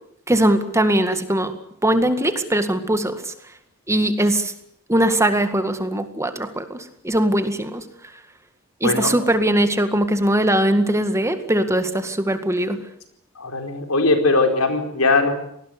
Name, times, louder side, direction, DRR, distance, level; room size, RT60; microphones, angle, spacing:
voice 1, 0.3-1.5 1.8-3.2 3.9-4.5 4.9-6.8 7.0-7.8 8.8-12.8, right 1 dB, 15° right, 9 dB, 2.0 m, -20 dB
voice 2, 13.4-15.3, left 3 dB, 85° left, 6 dB, 4.6 m, -19 dB
26.5 x 19.5 x 8.0 m, 0.70 s
head